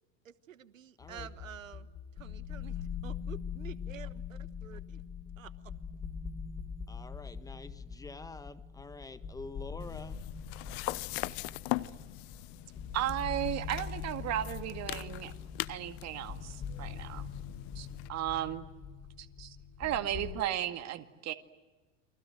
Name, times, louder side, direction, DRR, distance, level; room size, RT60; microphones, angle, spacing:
voice 1, 0.2-1.9 2.2-5.0 5.4-5.5, right 10 dB, 80° right, 14 dB, 1.4 m, -49 dB
sound 1, 1.0-20.4, left 7 dB, 30° left, 3.7 m, -43 dB
voice 2, 1.0-1.3 6.9-10.2, left 3 dB, 10° left, 11 dB, 1.6 m, -47 dB
sound 2, 9.8-18.1, left 21 dB, 55° left, 0.9 m, -41 dB
voice 3, 12.9-15.3 15.7-17.3 17.8-18.7 19.2-21.3, right 12 dB, 40° right, 8 dB, 2.1 m, -35 dB
29.5 x 24.0 x 7.8 m, 1.2 s
figure-of-eight pair, 80°, 39 cm